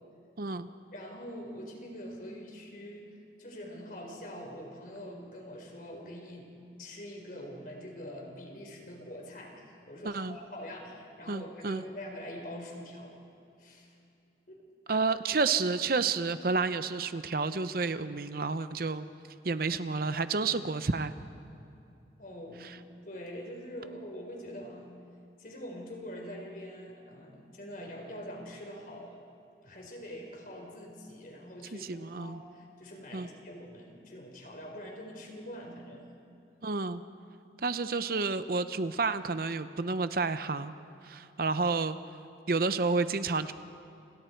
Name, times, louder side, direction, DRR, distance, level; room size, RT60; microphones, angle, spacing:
voice 1, 0.4-0.7 10.0-10.4 11.3-11.8 14.9-19.1 19.4-21.1 22.6-22.8 31.7-32.4 33.1-33.3 36.6-37.0 37.6-40.7 41.0-42.0 42.5-43.5, right 4 dB, 55° right, 11 dB, 0.7 m, -30 dB
voice 2, 0.9-6.5 6.8-13.2 13.6-14.0 14.5-14.6 14.9-15.0 22.2-22.7 23.0-24.9 25.4-29.2 29.6-36.1, equal, 50° left, 1 dB, 4.5 m, -44 dB
29.5 x 28.0 x 4.6 m, 2.6 s
head